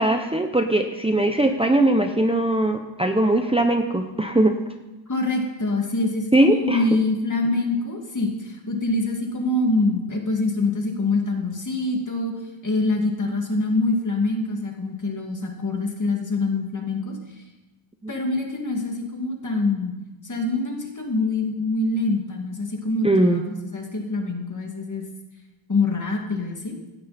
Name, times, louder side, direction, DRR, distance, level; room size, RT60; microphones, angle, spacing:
voice 1, 0.0-4.6 6.3-7.0 18.0-18.1 23.0-23.4, right 1 dB, 10° right, 4 dB, 0.8 m, -20 dB
voice 2, 5.1-12.3 12.6-17.2 18.1-19.9 20.2-25.1 25.7-26.7, left 2 dB, 40° left, 1 dB, 2.5 m, -25 dB
17.0 x 12.0 x 4.3 m, 1.1 s
wide cardioid pair, 105°, 48 cm